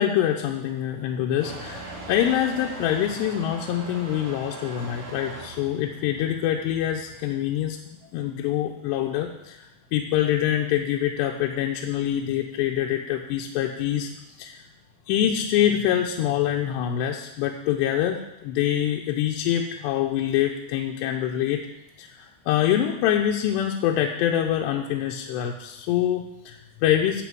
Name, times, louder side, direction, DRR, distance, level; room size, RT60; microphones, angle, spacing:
voice 1, 0.0-7.8 8.1-9.6 9.9-14.1 14.4-14.6 15.1-21.6 22.0-27.2, left 11 dB, 90° left, 1 dB, 2.9 m, -25 dB
Motor vehicle (road) / Engine starting / Accelerating revving vroom, 1.4-7.3, right 3 dB, 70° right, 3.8 m, -41 dB
11.5 x 4.8 x 7.6 m, 0.90 s
omnidirectional pair, 4.8 m